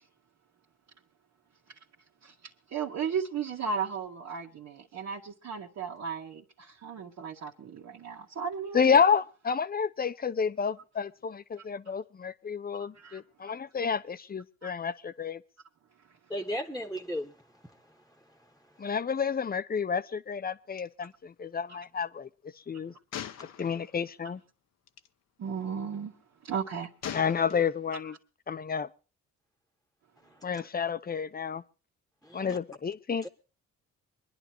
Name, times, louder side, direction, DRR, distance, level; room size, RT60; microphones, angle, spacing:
voice 1, 2.7-9.0 12.8-13.2 14.6-14.7 21.7-21.8 24.2-24.3 25.4-26.2 26.4-26.9, right 6 dB, 60° right, 2.0 m, -35 dB
voice 2, 8.7-15.4 18.8-22.3 22.7-22.9 23.6-24.4 27.1-28.2 28.5-28.9 30.4-31.6 32.3-33.3, left 6 dB, 30° left, 1.0 m, -30 dB
voice 3, 16.3-17.3 17.6-17.8 30.3-30.6 32.2-32.6 33.2-33.3, equal, ahead, 1.5 m, -36 dB
Gunshot gunfire, 20.8-20.9 21.1-21.3 23.1-24.1 24.9-25.1 27.0-27.9, left 10 dB, 60° left, 0.9 m, -41 dB
25.5 x 11.0 x 2.9 m
cardioid pair, 90°, 30 cm